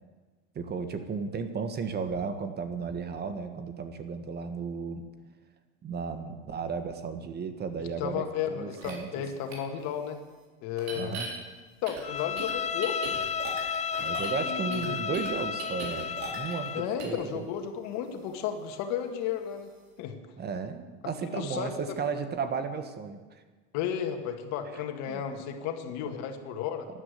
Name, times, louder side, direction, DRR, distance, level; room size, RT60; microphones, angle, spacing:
voice 1, 0.5-5.0 5.8-9.2 10.9-11.3 14.0-17.5 20.4-23.4 24.7-25.2, right 5 dB, 30° right, 9 dB, 1.5 m, -34 dB
voice 2, 8.0-10.2 10.6-11.2 11.8-13.2 14.4-15.0 16.7-19.7 20.0-20.2 21.3-22.0 23.7-26.9, left 8 dB, 60° left, 6 dB, 2.1 m, -33 dB
sound 1, 8.8-8.9 9.5-9.6 10.8-11.3 11.9-14.4 14.7-16.7 17.0-17.2, right 4 dB, 80° right, 4.2 m, -39 dB
Bowed string instrument, 12.0-16.9, left 7 dB, 20° left, 0.6 m, -32 dB
12.5 x 11.5 x 8.4 m, 1.4 s
supercardioid pair, 105°, 31 cm